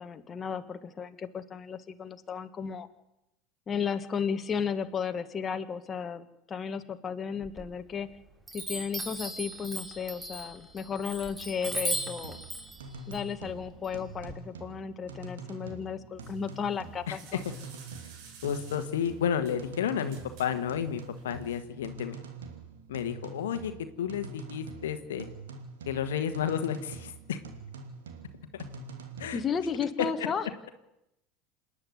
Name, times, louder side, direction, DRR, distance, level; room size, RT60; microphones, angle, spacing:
voice 1, 0.0-2.9 3.7-8.1 8.5-12.4 13.1-17.4 29.3-30.4, left 6 dB, 30° left, 8 dB, 1.7 m, -34 dB
Chime, 7.4-8.1 8.5-14.3, right 1 dB, 10° right, 3.0 m, -37 dB
sound 1, 11.4-29.5, right 4 dB, 80° right, 2.6 m, -45 dB
sound 2, 16.2-21.7, right 6 dB, 65° right, 4.8 m, -54 dB
voice 2, 17.1-17.4 18.4-22.2 22.9-23.7 24.0-25.3 25.9-27.4 28.5-28.6 29.2-29.4 30.0-30.3, left 8 dB, 80° left, 9 dB, 1.4 m, -31 dB
27.0 x 9.9 x 9.6 m, 0.87 s
hypercardioid pair, 80°, 0 cm